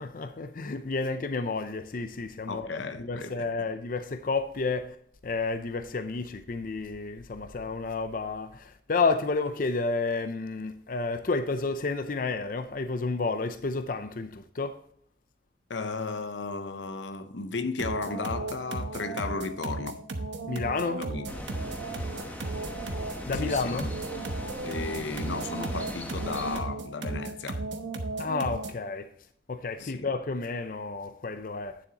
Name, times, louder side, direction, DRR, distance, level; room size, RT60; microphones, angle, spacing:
voice 1, 0.0-5.0 5.2-14.8 20.5-21.1 23.3-23.9 28.2-29.1 29.5-31.8, left 3 dB, 50° left, 0.5 m, -31 dB
voice 2, 2.5-3.7 15.7-20.0 21.0-21.5 23.3-23.9 24.6-27.7 29.8-30.1, left 4 dB, 85° left, 0.8 m, -35 dB
sound 1, 17.8-28.9, right 2 dB, 80° right, 1.0 m, -35 dB
sound 2, 21.3-26.6, left 1 dB, 10° left, 1.0 m, -39 dB
9.7 x 7.2 x 2.9 m
head